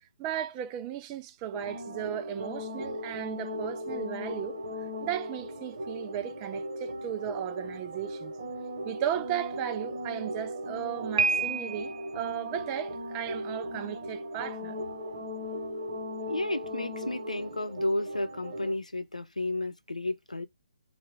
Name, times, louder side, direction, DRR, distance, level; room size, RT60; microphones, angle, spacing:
voice 1, 0.0-8.3 8.8-14.8, right 11 dB, 20° right, 0.4 m, -36 dB
sound 1, 1.5-18.8, equal, 40° right, 1.1 m, -37 dB
Piano, 11.2-12.1, right 5 dB, 55° right, 0.7 m, -28 dB
voice 2, 16.3-20.5, left 2 dB, 80° left, 0.7 m, -32 dB
4.6 x 2.3 x 3.3 m
figure-of-eight pair, 140°, 4 cm